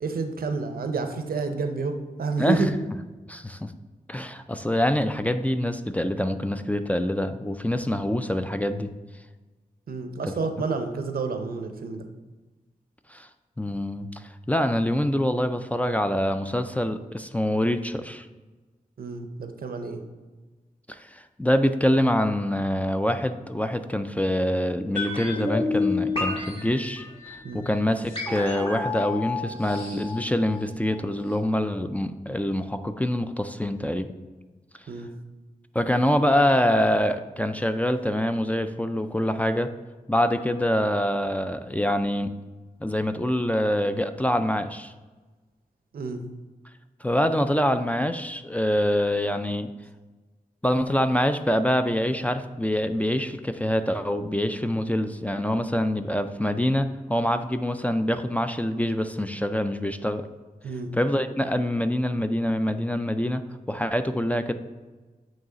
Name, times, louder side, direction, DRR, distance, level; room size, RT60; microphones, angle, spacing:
voice 1, 0.0-2.7 9.9-12.1 19.0-20.0 27.4-27.7 34.9-35.1 45.9-46.2 60.6-60.9, right 4 dB, 85° right, 7 dB, 0.6 m, -29 dB
voice 2, 3.3-3.7 4.1-8.9 13.1-13.3 13.6-18.3 20.9-34.1 35.7-39.7 40.1-42.3 42.8-44.9 47.0-49.7 50.6-60.3 61.0-63.4 63.7-64.5, left 1 dB, 10° left, 9 dB, 0.3 m, -25 dB
sound 1, 25.0-31.0 31.3-31.4, left 3 dB, 35° left, 1.5 m, -30 dB
8.7 x 3.1 x 3.8 m, 1.3 s
wide cardioid pair, 90°, 15 cm